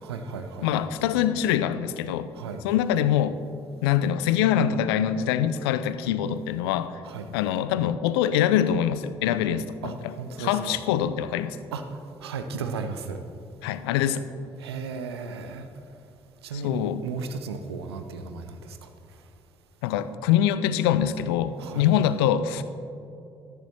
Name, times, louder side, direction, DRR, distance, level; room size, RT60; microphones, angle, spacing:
voice 1, 0.0-0.7 2.3-2.6 7.0-7.3 9.8-10.8 11.7-11.9 12.2-13.2 14.6-15.7 16.4-18.9 21.6-21.9, right 5 dB, 80° right, 8 dB, 0.6 m, -35 dB
voice 2, 0.6-2.3 2.6-3.4 3.8-6.9 7.3-11.6 13.6-14.3 16.6-17.0 19.8-22.6, left 10 dB, 75° left, 13 dB, 0.4 m, -24 dB
13.0 x 11.5 x 3.0 m, 2.6 s
figure-of-eight pair, 40°, 13 cm